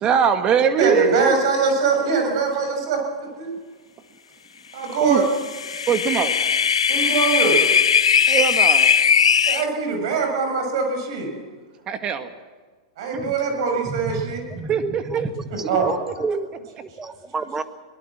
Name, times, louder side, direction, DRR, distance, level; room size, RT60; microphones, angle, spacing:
voice 1, 0.0-1.4 5.0-5.3 5.9-6.3 8.3-8.9 11.9-12.3 13.1-13.3 14.7-15.3 16.1-16.4, right 7 dB, 30° right, 9 dB, 1.8 m, -22 dB
voice 2, 0.8-3.5 4.7-5.3 6.9-7.6 9.5-11.4 13.0-14.4 15.5-15.9, right 4 dB, 60° right, 4 dB, 6.8 m, -23 dB
sound 1, 5.3-9.6, left 7 dB, 85° left, 0.6 m, -18 dB
voice 3, 13.8-17.6, right 4 dB, 15° right, 11 dB, 1.5 m, -31 dB
22.5 x 18.5 x 7.5 m, 1.4 s
hypercardioid pair, 110°, 3 cm